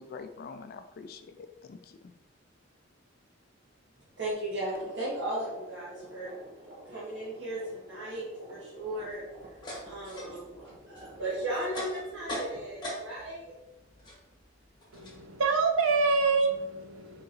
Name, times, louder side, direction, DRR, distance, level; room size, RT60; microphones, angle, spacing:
voice 1, 0.0-2.1, left 5 dB, 50° left, 8 dB, 0.3 m, -45 dB
voice 2, 4.2-6.4 6.9-9.2 9.8-13.6, right 1 dB, 65° right, -8 dB, 1.1 m, -36 dB
sound 1, 4.7-12.8, right 1 dB, 50° right, 0.8 m, -50 dB
sound 2, 8.8-13.4 13.7-16.6, equal, 25° left, 1.1 m, -42 dB
voice 3, 14.9-17.2, right 4 dB, 90° right, 4 dB, 0.6 m, -26 dB
3.8 x 2.7 x 4.0 m, 0.95 s
head